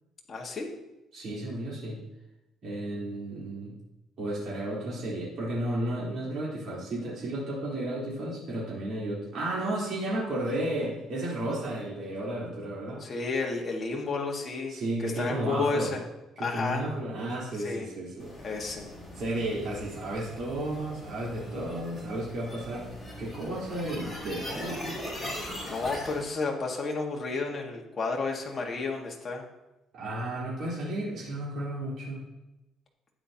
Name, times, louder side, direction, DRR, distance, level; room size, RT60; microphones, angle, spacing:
voice 1, 0.3-0.7 13.0-14.7 15.0-16.0 16.4-16.8 17.6-17.9 18.4-18.9 25.6-29.4, left 4 dB, 25° left, 0 dB, 1.6 m, -31 dB
voice 2, 1.1-2.0 2.6-3.7 4.2-13.0 14.7-15.9 16.4-18.3 19.1-22.9 23.2-24.8 29.9-32.2, right 1 dB, 55° right, -7 dB, 3.5 m, -33 dB
sound 1, 18.2-26.2, equal, ahead, 3.2 m, -40 dB
12.0 x 8.9 x 2.9 m, 0.97 s
cardioid pair, 150°, 0 cm